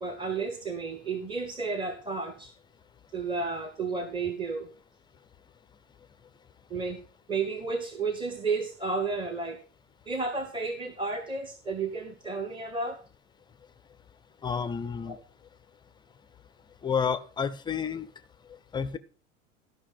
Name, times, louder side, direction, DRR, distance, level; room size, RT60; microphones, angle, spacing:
voice 1, 0.0-2.5 3.1-4.7 6.7-7.0 7.3-9.6 10.1-13.0 15.1-15.2, right 4 dB, 10° right, 7 dB, 0.9 m, -32 dB
voice 2, 14.4-15.2 16.8-18.1 18.7-19.0, left 6 dB, 10° left, 14 dB, 0.5 m, -30 dB
13.0 x 5.6 x 5.4 m, 0.38 s
figure-of-eight pair, 85°, 40 cm